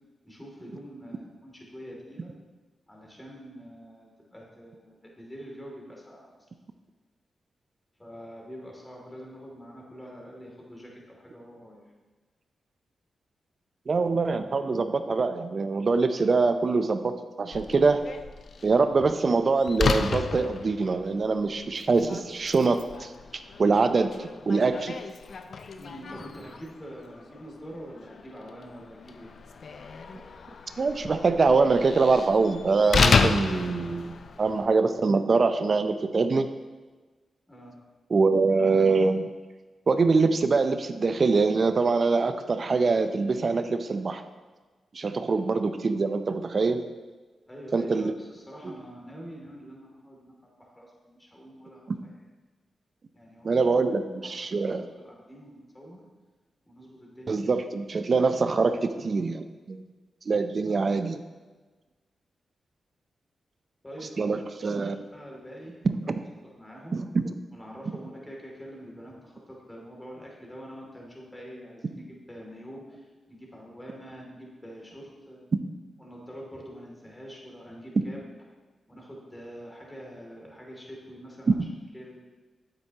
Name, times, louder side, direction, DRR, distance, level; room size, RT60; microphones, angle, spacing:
voice 1, 0.2-2.3 2.9-6.4 8.0-11.8 25.8-29.3 37.5-37.8 47.5-52.1 53.1-53.5 54.2-56.1 56.7-57.4 63.8-65.8 66.6-67.0 67.5-75.4 76.0-78.2 78.9-81.6 81.9-82.2, equal, 15° left, -2 dB, 2.6 m, -45 dB
voice 2, 13.9-18.0 18.6-23.1 23.6-25.0 30.8-36.5 38.1-39.3 39.9-44.2 44.9-46.8 47.7-48.1 48.6-48.7 53.4-54.8 57.3-59.8 60.3-61.2 64.2-65.0 66.1-66.2 66.9-67.3 81.5-81.6, right 4 dB, 55° right, 9 dB, 0.6 m, -24 dB
Slam, 17.5-34.7, left 4 dB, 65° left, 0.5 m, -32 dB
8.9 x 7.7 x 2.9 m, 1.3 s
supercardioid pair, 50°, 0 cm